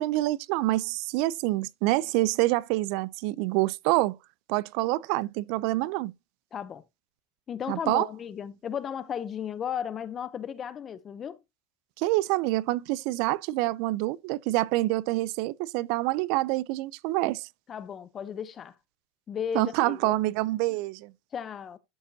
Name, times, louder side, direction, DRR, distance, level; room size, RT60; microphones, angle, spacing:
voice 1, 0.0-4.2 4.5-6.1 7.7-8.1 12.0-17.5 19.5-21.1, right 18 dB, 50° right, 0.4 m, -27 dB
voice 2, 6.5-6.8 7.5-11.4 17.7-18.7 19.3-20.2 21.3-21.8, left 8 dB, 20° left, 0.5 m, -35 dB
12.5 x 5.0 x 2.7 m
supercardioid pair, 165°, 0 cm